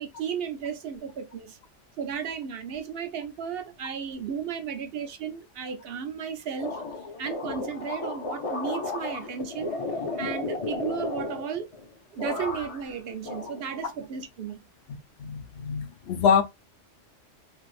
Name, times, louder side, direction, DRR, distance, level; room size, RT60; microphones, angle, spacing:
voice 1, 0.0-1.6 2.0-6.8 7.2-9.7 10.2-11.7 12.1-14.6, right 7 dB, 65° right, 0.7 m, -34 dB
sound 1, 6.6-11.9 12.2-12.9 13.2-14.1, left 3 dB, 40° left, 0.6 m, -34 dB
voice 2, 15.2-16.4, left 7 dB, 65° left, 0.8 m, -24 dB
2.6 x 2.4 x 3.1 m
omnidirectional pair, 1.2 m